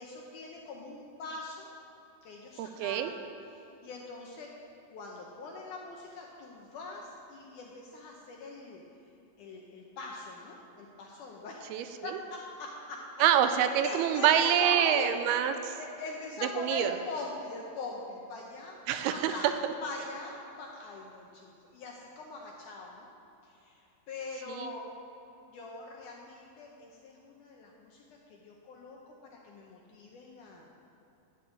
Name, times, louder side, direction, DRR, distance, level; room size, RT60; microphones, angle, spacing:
voice 1, 0.0-1.7 2.2-3.1 3.6-4.5 4.9-8.8 9.4-11.6 12.0-13.0 13.6-15.2 15.7-18.8 19.1-19.5 19.8-23.1 23.4-24.9 25.5-28.0 28.3-29.1 29.4-30.7, left 3 dB, 75° left, -1 dB, 1.9 m, -42 dB
voice 2, 2.6-3.1 11.7-12.1 13.2-15.7 16.6-16.9 18.9-19.5 24.5-24.7, right 9 dB, 85° right, 9 dB, 2.4 m, -26 dB
11.0 x 5.5 x 8.6 m, 3.0 s
omnidirectional pair, 4.5 m